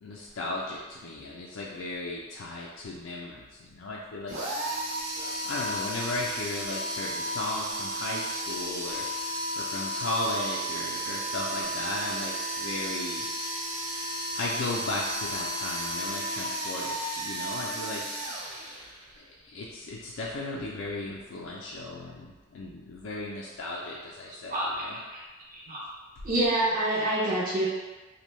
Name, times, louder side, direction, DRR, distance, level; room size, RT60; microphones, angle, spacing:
voice 1, 0.0-4.4 5.4-9.1 9.6-13.3 14.3-18.0 19.1-25.0, left 2 dB, 75° left, -4 dB, 0.3 m, -36 dB
sound 1, 4.3-19.2, right 1 dB, 80° right, 0.7 m, -33 dB
voice 2, 24.5-24.8 25.1-25.2 25.7-25.8 26.2-27.7, right 1 dB, 40° right, -6 dB, 0.5 m, -27 dB
2.6 x 2.1 x 3.0 m, 1.2 s
head